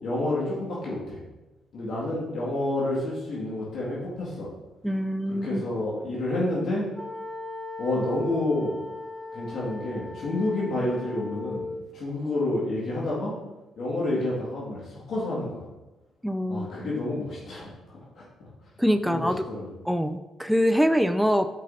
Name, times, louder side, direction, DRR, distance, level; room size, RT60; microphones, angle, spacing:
voice 1, 0.0-1.2 1.7-4.5 5.4-6.8 7.8-8.8 9.3-11.6 11.9-13.3 13.8-15.6 16.5-17.7 19.0-19.7, left 2 dB, 65° left, -6 dB, 2.1 m, -29 dB
voice 2, 4.8-5.6 16.2-16.9 18.8-19.5 19.9-21.5, equal, ahead, 8 dB, 0.3 m, -24 dB
sound 1, 6.9-11.8, left 2 dB, 20° left, 1.3 m, -38 dB
9.3 x 5.4 x 2.7 m, 1.1 s
cardioid pair, 90°, 0 cm